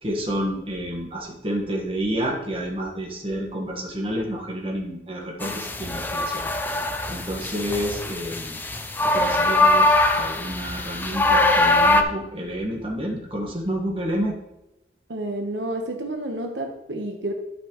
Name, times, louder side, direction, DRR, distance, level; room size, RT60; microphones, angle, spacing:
voice 1, 0.0-6.4 7.1-8.6 9.0-14.4, equal, 30° right, -1 dB, 1.5 m, -29 dB
sound 1, 5.4-12.0, left 2 dB, 10° left, 0.5 m, -22 dB
voice 2, 15.1-17.3, right 1 dB, 85° right, 3 dB, 1.1 m, -30 dB
12.0 x 6.1 x 3.1 m, 0.92 s
head